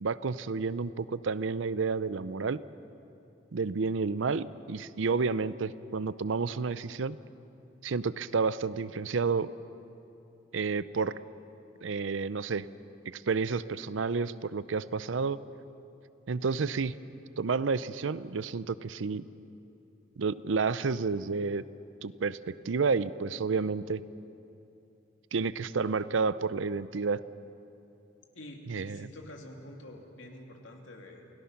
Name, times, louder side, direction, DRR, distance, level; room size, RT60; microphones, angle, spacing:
voice 1, 0.0-2.6 3.5-7.2 7.8-9.5 10.5-11.2 11.8-12.7 13.1-15.4 16.3-16.9 17.4-19.3 20.2-21.6 22.0-24.0 25.3-27.2 28.7-29.1, right 4 dB, 85° right, 16 dB, 0.6 m, -30 dB
voice 2, 28.3-31.2, left 1 dB, 90° left, 2 dB, 2.7 m, -47 dB
29.0 x 18.0 x 5.9 m, 2.8 s
head